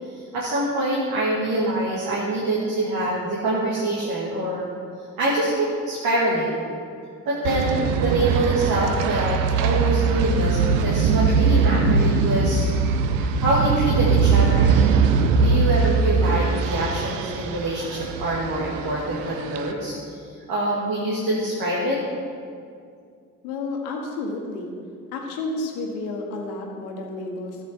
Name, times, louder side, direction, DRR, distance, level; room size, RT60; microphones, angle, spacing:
voice 1, 0.0-4.7 5.2-6.7 7.3-12.6 13.1-14.8 15.4-20.2 20.5-22.0, right 1 dB, 65° right, -6 dB, 2.1 m, -25 dB
sound 1, 7.4-19.7, right 5 dB, 85° right, 0.6 m, -21 dB
voice 2, 23.4-24.7 25.1-27.6, left 2 dB, 85° left, 1 dB, 1.4 m, -31 dB
13.5 x 7.5 x 4.4 m, 2.3 s
hypercardioid pair, 45°, 38 cm